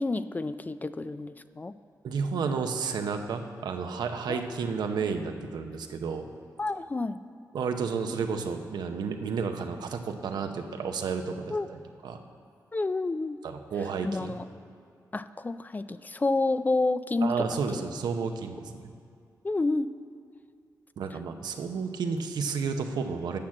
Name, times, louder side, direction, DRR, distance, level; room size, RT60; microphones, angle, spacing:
voice 1, 0.0-1.7 4.3-4.4 6.6-7.2 11.5-11.7 12.7-13.4 14.0-14.5 15.1-17.5 17.7-17.8 19.4-19.9, left 2 dB, 25° left, 13 dB, 0.3 m, -29 dB
voice 2, 2.0-6.3 7.5-12.2 13.4-14.4 17.2-18.9 21.0-23.4, right 5 dB, 85° right, 6 dB, 0.7 m, -32 dB
8.5 x 5.9 x 7.4 m, 2.4 s
cardioid pair, 70°, 7 cm